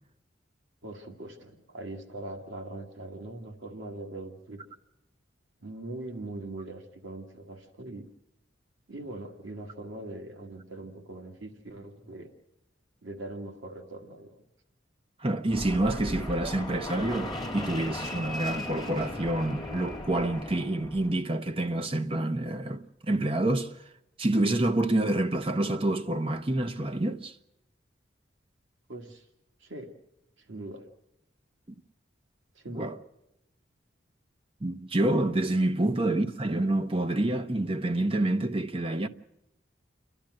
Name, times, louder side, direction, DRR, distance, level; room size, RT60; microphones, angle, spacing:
voice 1, 0.8-4.6 5.6-8.1 8.9-12.3 13.0-14.3 28.9-29.3 29.6-29.9 30.4-30.9 32.5-33.0 35.8-35.9, right 2 dB, 90° right, 1.8 m, -41 dB
voice 2, 15.2-23.7 24.2-27.3 32.7-32.9 34.6-39.1, right 1 dB, 30° right, 0.8 m, -27 dB
Fixed-wing aircraft airplane, 15.5-21.1, left 1 dB, ahead, 2.4 m, -37 dB
28.5 x 12.0 x 7.7 m
head